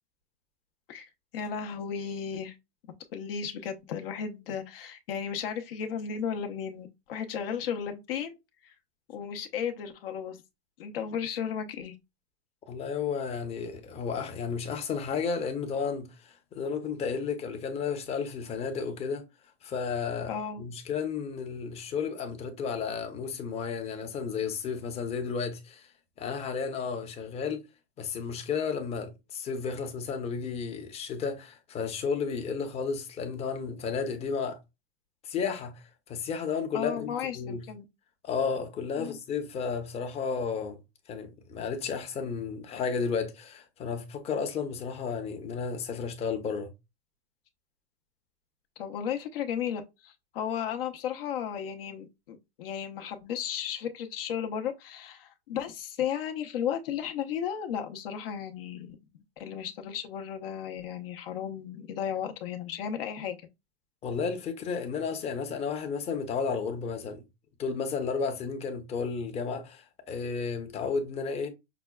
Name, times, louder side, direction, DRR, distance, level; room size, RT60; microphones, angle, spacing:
voice 1, 0.9-2.6 3.1-8.4 8.6-8.7 9.1-10.4 10.8-11.9 20.3-20.6 36.7-37.8 39.0-39.2 48.8-63.5, left 8 dB, 60° left, 0.7 m, -34 dB
voice 2, 12.7-19.2 19.6-25.9 26.2-27.6 28.0-34.6 35.2-37.6 38.2-40.8 41.1-46.7 64.0-67.2 67.6-71.5, left 5 dB, 20° left, 0.7 m, -33 dB
5.9 x 2.2 x 2.2 m
hypercardioid pair, 140°, 32 cm